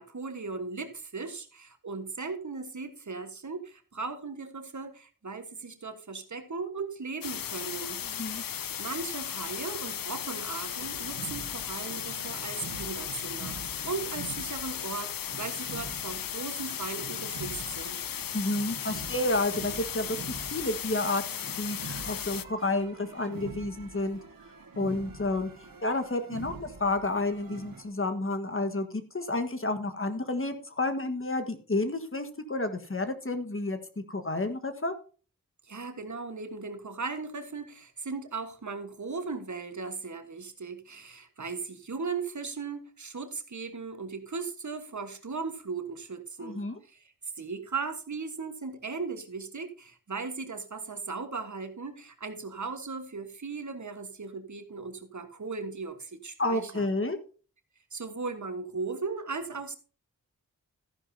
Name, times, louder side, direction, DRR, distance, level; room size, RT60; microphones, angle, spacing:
voice 1, 0.0-8.4 8.8-18.0 35.6-56.9 57.9-59.8, right 4 dB, 55° right, 7 dB, 1.5 m, -37 dB
sound 1, 7.2-22.4, left 9 dB, 75° left, 0.6 m, -36 dB
sound 2, 10.8-27.8, right 4 dB, 75° right, 1.8 m, -45 dB
voice 2, 18.3-24.2 24.7-25.5 25.8-33.8 34.1-34.9 46.4-46.8 56.4-57.2, left 2 dB, 40° left, 8 dB, 1.5 m, -30 dB
13.5 x 10.5 x 2.8 m, 0.38 s
wide cardioid pair, 85°, 34 cm